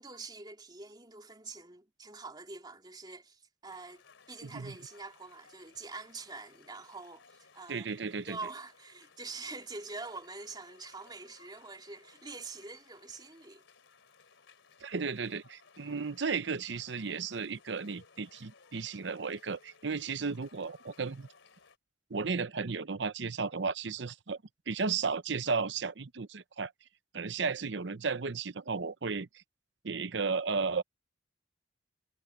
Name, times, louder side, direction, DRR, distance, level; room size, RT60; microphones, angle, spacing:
voice 1, 0.0-4.0 4.3-7.2 7.5-7.9 8.2-13.6, right 3 dB, 20° right, 3.4 m, -45 dB
sound 1, 3.7-21.8, left 5 dB, 85° left, 3.3 m, -61 dB
voice 2, 4.4-4.7 7.7-8.4 14.8-21.3 22.1-24.4 24.7-26.7 27.1-29.4 29.8-30.8, right 5 dB, 65° right, 0.7 m, -34 dB
head